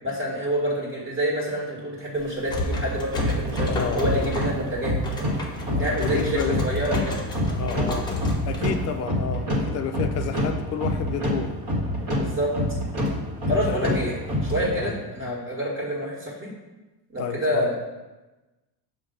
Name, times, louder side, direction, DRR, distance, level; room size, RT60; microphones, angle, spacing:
voice 1, 0.0-3.7 3.9-4.9 5.7-7.2 9.6-9.8 12.1-12.5 13.5-14.2 14.5-16.5 17.1-17.7, equal, 25° right, -3 dB, 1.8 m, -27 dB
sound 1, 2.2-9.0, left 2 dB, 10° left, 0.8 m, -32 dB
sound 2, 3.1-15.0, equal, 40° right, 1.7 m, -27 dB
voice 2, 3.7-4.3 5.8-6.6 7.5-8.1 8.5-11.6 13.6-14.1 14.7-15.0 17.2-17.7, left 7 dB, 35° left, 6 dB, 0.5 m, -30 dB
6.5 x 2.8 x 5.2 m, 1.1 s
cardioid pair, 140°, 45 cm